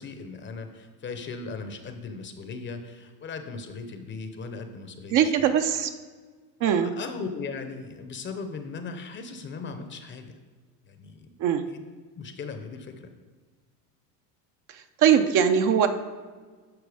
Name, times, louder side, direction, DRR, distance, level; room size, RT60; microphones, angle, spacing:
voice 1, 0.0-5.5 6.6-10.4 10.9-11.3 11.7-11.8 12.2-13.1, left 4 dB, 25° left, 7 dB, 0.7 m, -38 dB
voice 2, 5.1-5.9 6.6-6.9 11.4-11.6 15.0-15.9, right 8 dB, 40° right, 7 dB, 0.6 m, -21 dB
12.0 x 4.4 x 4.9 m, 1.5 s
supercardioid pair, 120°, 47 cm